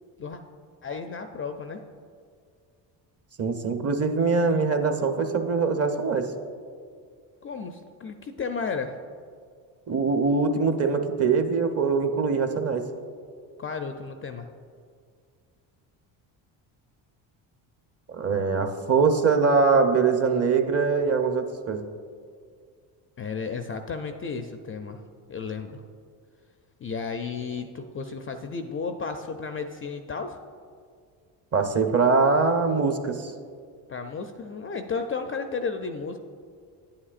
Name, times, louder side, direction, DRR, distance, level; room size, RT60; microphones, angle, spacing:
voice 1, 0.8-1.8 7.4-9.0 13.6-14.5 23.2-25.0 25.3-25.8 26.8-30.4 33.9-36.2, left 5 dB, 30° left, 7 dB, 0.4 m, -33 dB
voice 2, 3.4-6.3 9.9-12.9 18.1-21.9 31.5-33.3, right 4 dB, 30° right, 7 dB, 0.7 m, -23 dB
9.5 x 8.6 x 2.4 m, 2.1 s
supercardioid pair, 70°, 50 cm